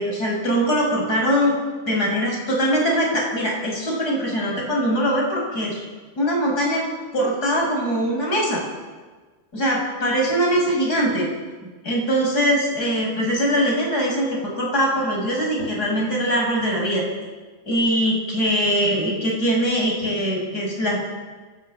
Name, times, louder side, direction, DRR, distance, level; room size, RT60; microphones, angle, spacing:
voice 1, 0.0-1.6 1.9-5.9 6.2-6.8 7.1-8.6 9.5-11.3 11.8-14.3 14.6-17.0 17.7-21.0, equal, 20° left, -1 dB, 7.6 m, -22 dB
30.0 x 14.5 x 9.0 m, 1.4 s
omnidirectional pair, 4.8 m